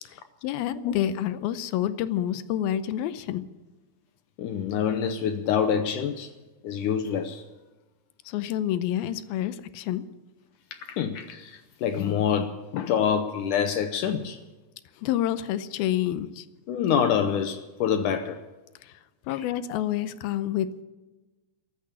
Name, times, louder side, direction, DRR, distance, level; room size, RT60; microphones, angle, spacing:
voice 1, 0.4-3.4 8.3-10.0 15.0-16.4 18.8-18.9 19.3-20.8, left 11 dB, 90° left, 2.6 m, -28 dB
voice 2, 4.4-6.3 6.6-7.4 10.9-14.4 16.7-18.4 19.3-19.8, left 8 dB, 75° left, 2.0 m, -26 dB
14.5 x 11.0 x 8.8 m
omnidirectional pair, 4.2 m